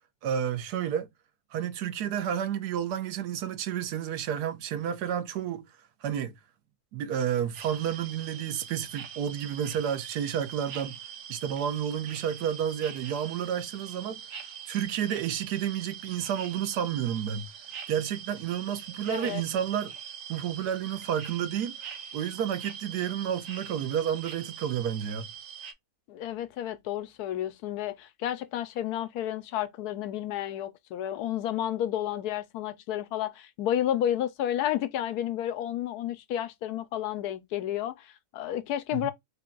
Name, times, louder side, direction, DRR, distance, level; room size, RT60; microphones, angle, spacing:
voice 1, 0.2-1.1 1.5-5.6 6.0-6.4 6.9-11.0 11.3-14.2 14.6-17.5 17.9-19.9 20.3-21.7 22.1-25.3 38.9-39.1, right 9 dB, 85° right, 1.2 m, -30 dB
sound 1, 7.5-25.7, right 8 dB, 65° right, 1.1 m, -43 dB
voice 2, 19.1-19.4 26.1-39.1, left 11 dB, 80° left, 1.1 m, -31 dB
4.1 x 2.3 x 3.6 m
omnidirectional pair, 1.6 m